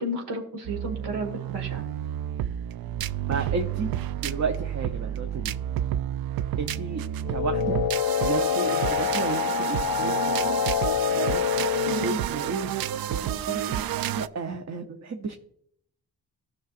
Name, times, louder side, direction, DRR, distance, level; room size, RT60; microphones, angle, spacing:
voice 1, 0.0-1.8 11.9-12.0, right 1 dB, 90° right, 3 dB, 1.8 m, -32 dB
sound 1, 0.6-14.3, right 11 dB, 65° right, 0.5 m, -30 dB
voice 2, 3.3-3.9 4.2-5.5 6.6-7.8 8.2-10.5 11.1-11.5 11.9-12.7 13.1-13.8 14.2-15.3, right 4 dB, 45° right, 4 dB, 0.9 m, -32 dB
sound 2, 7.3-12.2, left 10 dB, 55° left, 0.5 m, -26 dB
14.0 x 5.9 x 2.5 m, 0.69 s
cardioid pair, 55°, 39 cm